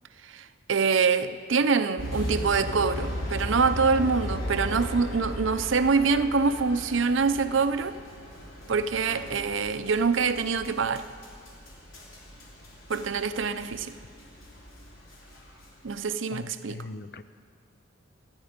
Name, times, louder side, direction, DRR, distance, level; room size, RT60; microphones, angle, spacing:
voice 1, 0.2-8.0 8.7-11.1 12.9-13.9 15.8-16.9, right 5 dB, 70° right, 11 dB, 0.6 m, -25 dB
sound 1, 2.0-15.9, equal, 85° left, 3.5 m, -37 dB
voice 2, 16.3-17.2, left 3 dB, 55° left, 12 dB, 0.6 m, -40 dB
26.5 x 9.7 x 5.2 m, 2.1 s
head